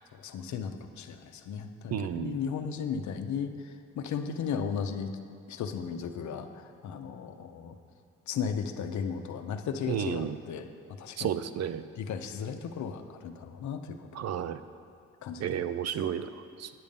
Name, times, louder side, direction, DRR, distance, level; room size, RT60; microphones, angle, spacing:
voice 1, 0.1-5.2 5.5-7.8 8.3-10.7 11.0-11.4 12.0-14.3 15.2-15.4, left 6 dB, 70° left, 7 dB, 0.8 m, -35 dB
voice 2, 1.9-2.4 9.9-10.4 11.2-11.8 14.1-14.6 15.4-16.7, right 9 dB, 60° right, 12 dB, 0.5 m, -32 dB
9.6 x 7.1 x 5.3 m, 2.4 s
cardioid pair, 90°, 30 cm